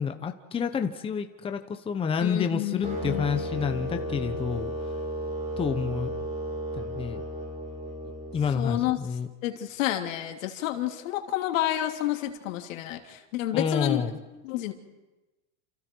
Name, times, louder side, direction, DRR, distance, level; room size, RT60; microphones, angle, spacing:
voice 1, 0.0-4.7 5.6-6.1 6.7-7.2 8.3-9.3 13.5-14.2, left 6 dB, 15° left, 7 dB, 1.0 m, -29 dB
voice 2, 2.2-4.4 8.6-9.0 9.4-14.0 14.4-14.7, left 13 dB, 85° left, 4 dB, 3.1 m, -30 dB
sound 1, 2.8-8.9, right 1 dB, 20° right, 6.4 m, -34 dB
29.5 x 28.5 x 4.7 m, 1.1 s
supercardioid pair, 155°, 38 cm